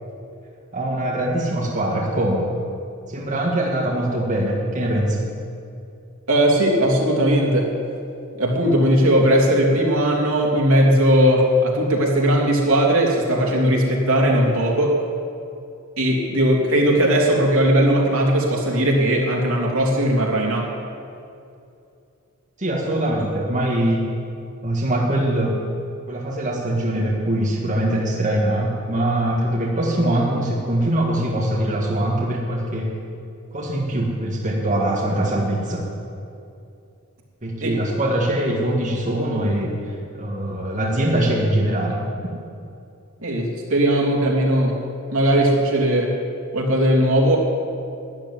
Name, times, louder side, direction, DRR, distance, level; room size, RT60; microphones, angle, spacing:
voice 1, 0.7-2.5 3.1-5.3 22.6-24.1 24.6-25.6 26.1-33.0 33.5-35.9 37.4-42.0, right 1 dB, 35° right, -3 dB, 1.9 m, -22 dB
voice 2, 6.3-7.7 8.3-15.0 16.0-20.7 37.6-37.7 43.2-44.8 45.1-46.2 46.5-47.4, right 1 dB, 70° right, -1 dB, 3.0 m, -18 dB
13.0 x 10.0 x 9.8 m, 2.6 s
head